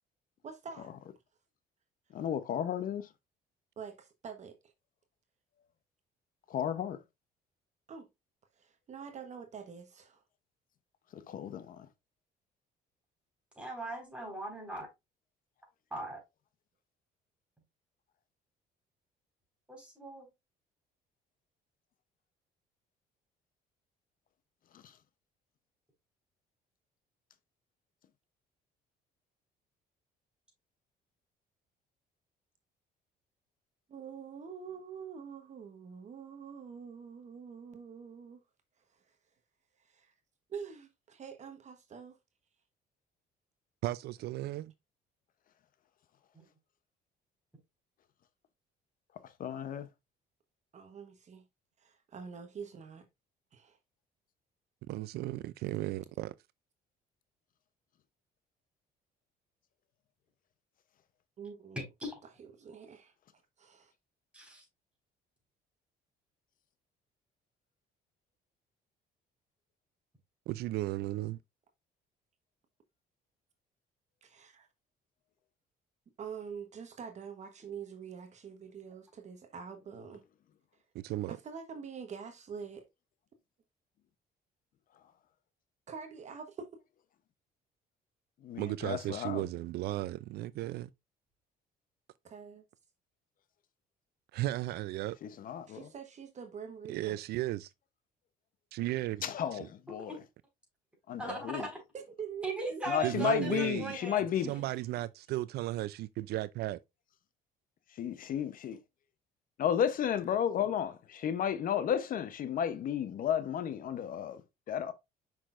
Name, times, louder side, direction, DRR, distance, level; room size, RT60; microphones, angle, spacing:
voice 1, 0.4-0.9 3.8-4.7 7.9-8.1 8.6-10.2 33.9-38.4 39.8-40.1 40.5-42.2 50.7-51.4 51.8-53.1 53.5-53.8 61.4-61.8 62.4-63.1 63.6-63.9 74.2-74.7 76.2-80.2 81.3-82.9 85.9-86.7 92.2-92.6 95.7-97.2 101.3-101.7 101.9-103.1, right 6 dB, 45° right, 1.1 m, -45 dB
voice 2, 2.1-3.1 6.5-7.0 11.1-11.9 24.7-24.9 49.2-49.9 88.4-89.5 95.2-95.9 99.2-100.2 101.1-101.7 102.9-104.5 107.9-108.8 109.6-114.9, left 9 dB, 55° left, 0.8 m, -33 dB
voice 3, 13.6-14.9 15.9-16.2 19.7-20.3 46.3-46.4 61.8-62.2 64.3-64.6 100.0-100.2 101.2-101.7 102.4-104.2, right 1 dB, 5° right, 4.3 m, -39 dB
voice 4, 43.8-44.7 54.9-56.3 70.5-71.4 80.9-81.4 88.6-90.9 94.3-95.2 96.9-97.7 98.7-99.2 99.5-99.7 103.0-104.0 104.5-106.8, right 16 dB, 70° right, 0.4 m, -35 dB
6.6 x 5.9 x 2.5 m
cardioid pair, 110°, 17 cm